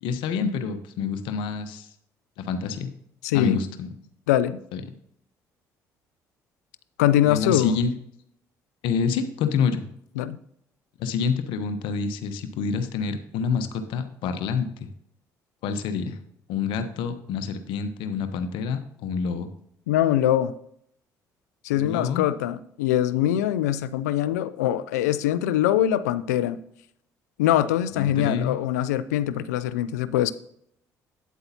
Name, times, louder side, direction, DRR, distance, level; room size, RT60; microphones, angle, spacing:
voice 1, 0.0-1.9 2.4-2.9 3.3-3.9 4.7-4.8 7.2-7.9 8.8-9.8 11.0-14.7 15.6-16.2 16.5-19.5 21.8-22.3 27.9-28.6, left 6 dB, 75° left, 9 dB, 0.9 m, -27 dB
voice 2, 3.2-3.6 4.3-4.6 7.0-7.8 10.2-10.4 19.9-20.5 21.6-26.6 27.4-30.3, left 12 dB, 90° left, 15 dB, 0.4 m, -23 dB
9.2 x 8.0 x 2.8 m, 0.70 s
hypercardioid pair, 55°, 9 cm